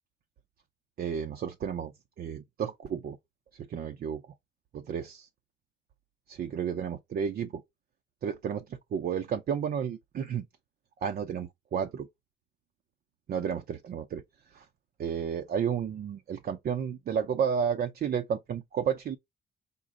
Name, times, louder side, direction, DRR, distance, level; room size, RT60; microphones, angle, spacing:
voice 1, 1.0-1.9 2.2-3.2 3.5-4.2 4.7-5.3 6.3-7.6 8.2-10.5 11.0-12.1 13.3-14.2 14.5-14.7 15.0-19.2, right 7 dB, 50° right, 0.5 m, -32 dB
5.1 x 2.0 x 3.6 m
cardioid pair, 90°, 20 cm